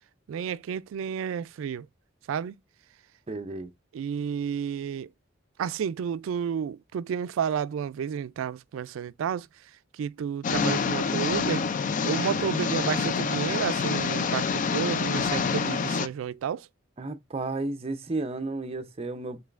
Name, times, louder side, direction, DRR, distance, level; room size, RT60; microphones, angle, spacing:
voice 1, 0.3-1.9 2.3-2.6 3.9-5.1 5.6-9.5 9.9-11.6 12.0-16.7, right 7 dB, 85° right, 0.3 m, -31 dB
voice 2, 3.3-3.7 13.4-13.5 17.0-19.4, right 2 dB, 30° right, 0.5 m, -33 dB
sound 1, 10.4-16.1, left 5 dB, 40° left, 0.3 m, -27 dB
5.4 x 3.8 x 2.4 m
head